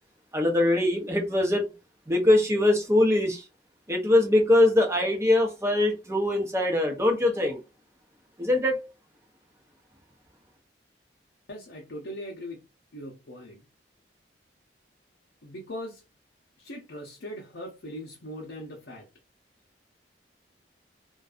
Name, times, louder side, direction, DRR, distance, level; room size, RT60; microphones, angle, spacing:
voice 1, 0.3-1.7 2.1-3.4 3.9-7.6 8.4-8.8, left 1 dB, 15° right, 0.6 m, -22 dB
voice 2, 11.5-12.6 12.9-13.6 15.4-16.0 16.6-19.1, equal, 75° left, 0.7 m, -40 dB
2.6 x 2.2 x 2.4 m
head